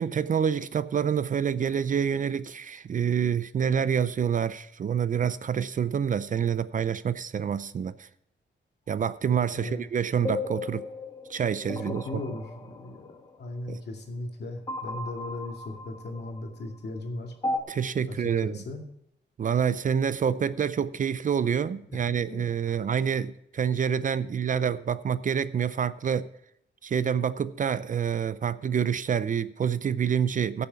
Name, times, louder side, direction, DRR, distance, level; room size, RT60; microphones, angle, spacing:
voice 1, 0.0-8.1 8.9-10.8 11.3-12.2 13.7-13.8 17.7-18.6 19.4-26.3 26.8-30.7, right 7 dB, 45° right, 0.5 m, -27 dB
voice 2, 9.5-9.8 11.9-17.3 18.1-18.2 18.4-18.8 21.9-22.7, left 2 dB, 60° left, 2.4 m, -37 dB
sound 1, 10.2-13.3 14.7-16.6 17.4-17.6, left 2 dB, 20° left, 1.4 m, -35 dB
16.0 x 7.0 x 4.7 m
wide cardioid pair, 125°, 19 cm